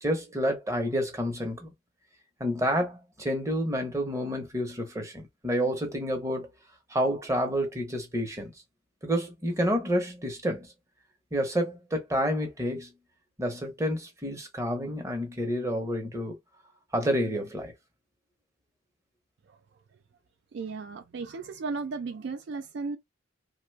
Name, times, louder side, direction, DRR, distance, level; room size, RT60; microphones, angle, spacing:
voice 1, 0.0-1.7 2.4-6.5 6.9-8.5 9.0-10.7 11.3-12.9 13.4-16.4 16.9-17.7, equal, 15° right, 0.8 m, -29 dB
voice 2, 20.5-23.0, right 4 dB, 60° right, 0.3 m, -35 dB
2.9 x 2.2 x 3.2 m
head